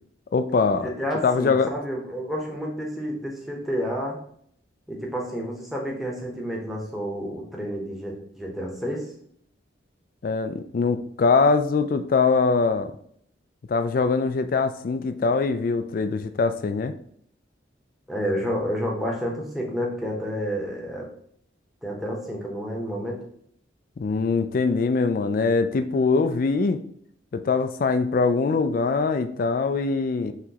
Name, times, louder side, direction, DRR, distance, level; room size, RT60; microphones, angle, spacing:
voice 1, 0.3-0.9 1.2-1.7 10.2-12.9 13.7-16.9 24.0-26.8 27.3-30.3, left 4 dB, 50° left, 10 dB, 0.3 m, -22 dB
voice 2, 0.8-4.2 4.9-9.0 18.1-21.1 21.8-23.2, equal, ahead, -2 dB, 0.9 m, -30 dB
5.8 x 3.0 x 2.9 m, 0.65 s
head